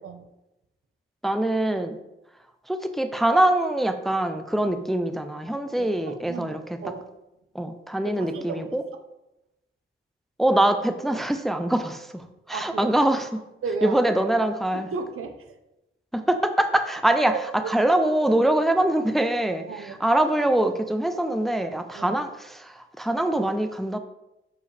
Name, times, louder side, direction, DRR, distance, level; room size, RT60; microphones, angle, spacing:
voice 1, 1.2-2.0 2.7-6.6 7.5-8.8 10.4-13.4 13.8-14.9 16.1-17.3 17.7-19.6 20.0-24.0, right 1 dB, ahead, 8 dB, 0.4 m, -23 dB
voice 2, 5.8-6.5 6.8-7.0 8.0-8.7 12.5-13.0 13.6-14.0 14.4-14.5 14.7-15.6 17.3-17.7 19.7-20.0 21.9-22.2, right 5 dB, 90° right, 7 dB, 0.8 m, -34 dB
6.9 x 5.0 x 3.3 m, 0.93 s
wide cardioid pair, 135°, 21 cm